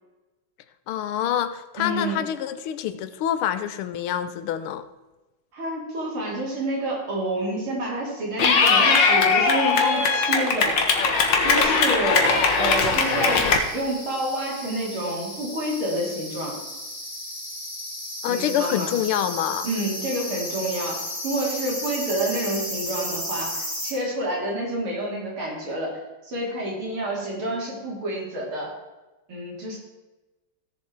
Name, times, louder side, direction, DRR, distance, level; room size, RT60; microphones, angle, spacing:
voice 1, 0.9-4.8 18.2-19.7, left 10 dB, 75° left, 11 dB, 1.6 m, -26 dB
voice 2, 1.8-2.2 5.5-10.8 11.4-13.5 13.7-16.6 18.2-18.9 19.6-28.7 29.3-29.8, right 1 dB, 70° right, -3 dB, 3.9 m, -28 dB
Clapping / Cheering, 8.4-13.6, left 4 dB, 60° left, 1.9 m, -20 dB
sound 1, 12.2-23.9, left 1 dB, ahead, 3.6 m, -34 dB
16.0 x 7.0 x 4.6 m, 1.1 s
omnidirectional pair, 2.4 m